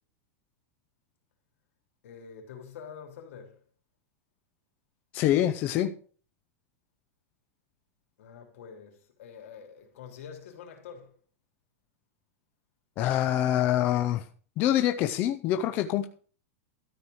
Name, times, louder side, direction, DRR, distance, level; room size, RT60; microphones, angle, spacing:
voice 1, 2.0-3.6 8.2-11.1, left 7 dB, 65° left, 3.4 m, -46 dB
voice 2, 5.1-5.9 13.0-14.3 14.6-16.1, left 12 dB, 25° left, 0.5 m, -25 dB
13.0 x 4.7 x 7.7 m
supercardioid pair, 180°, 8 cm